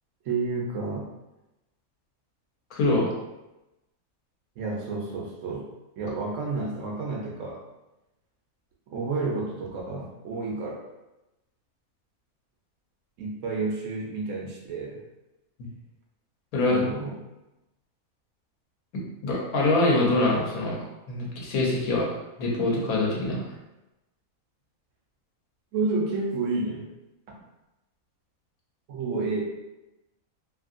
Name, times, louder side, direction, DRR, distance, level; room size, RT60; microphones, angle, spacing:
voice 1, 0.2-1.1 4.6-5.7 6.0-7.6 8.9-10.8 13.2-15.0 16.7-17.2 25.7-26.9 28.9-29.4, right 3 dB, 65° right, -2 dB, 0.9 m, -30 dB
voice 2, 2.7-3.1 16.5-16.8 18.9-22.1 22.4-23.4, left 2 dB, 80° left, -3 dB, 1.2 m, -24 dB
2.9 x 2.7 x 2.5 m, 0.97 s
omnidirectional pair, 1.5 m